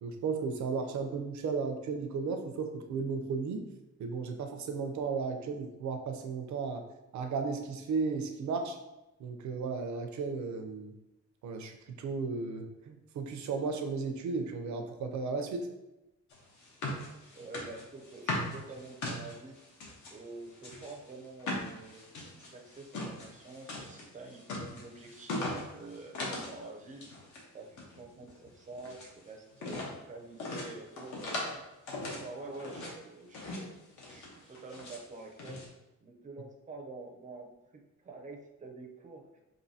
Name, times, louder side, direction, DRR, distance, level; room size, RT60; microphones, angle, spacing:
voice 1, 0.0-3.6 4.0-6.8 7.1-8.8 9.2-10.9 11.4-15.7, right 4 dB, 70° right, 5 dB, 0.6 m, -34 dB
sound 1, 16.3-20.1 20.6-26.6 26.8-27.4 27.7-29.1 29.6-29.9 30.4-31.6 31.9-33.0 33.3-33.7 34.0-35.0 35.4-35.7, left 2 dB, 75° left, 1.0 m, -39 dB
voice 2, 17.3-19.6 20.1-27.3 27.5-31.2 31.9-35.6 36.0-39.4, right 3 dB, 25° right, 2 dB, 0.5 m, -48 dB
5.3 x 2.6 x 2.7 m, 0.96 s
wide cardioid pair, 175°, 30 cm